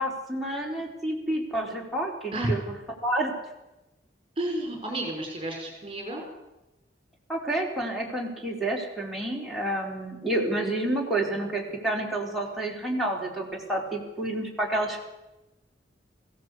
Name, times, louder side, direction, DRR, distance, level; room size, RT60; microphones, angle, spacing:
voice 1, 0.0-2.7 3.0-3.3 7.3-15.0, right 1 dB, ahead, -3 dB, 4.3 m, -29 dB
voice 2, 4.4-6.2, right 1 dB, 30° right, 1 dB, 5.2 m, -31 dB
21.0 x 16.5 x 8.5 m, 0.99 s
head